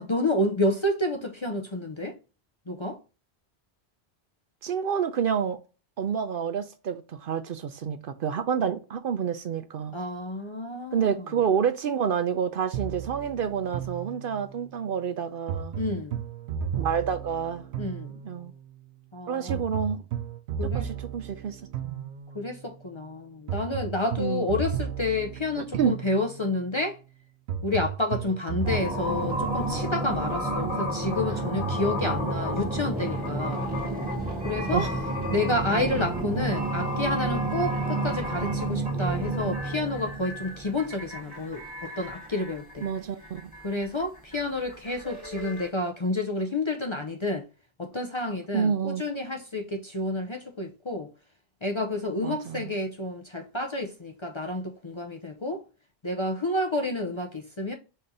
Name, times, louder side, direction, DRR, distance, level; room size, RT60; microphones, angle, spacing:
voice 1, 0.0-2.2 2.7-3.0 9.9-11.2 15.8-16.2 17.8-18.2 19.1-19.6 20.6-20.9 22.3-27.0 27.6-33.7 34.4-34.9 35.3-42.9 43.6-47.4 47.8-51.1 51.6-55.6 56.0-57.7, left 2 dB, 35° left, 0.6 m, -29 dB
voice 2, 4.6-5.6 6.0-10.0 10.9-15.7 16.8-17.6 18.2-18.5 19.3-20.0 20.7-22.1 24.2-24.5 25.6-26.0 34.7-34.9 42.8-43.5 48.5-49.0 52.2-52.6, right 7 dB, 60° right, 0.7 m, -28 dB
sound 1, 12.7-14.6 15.5-18.5 19.5-22.6 23.5-26.5 27.5-28.9, right 8 dB, 85° right, 0.9 m, -34 dB
sound 2, 28.6-45.7, right 2 dB, 10° right, 1.9 m, -30 dB
5.7 x 3.2 x 2.6 m
omnidirectional pair, 1.1 m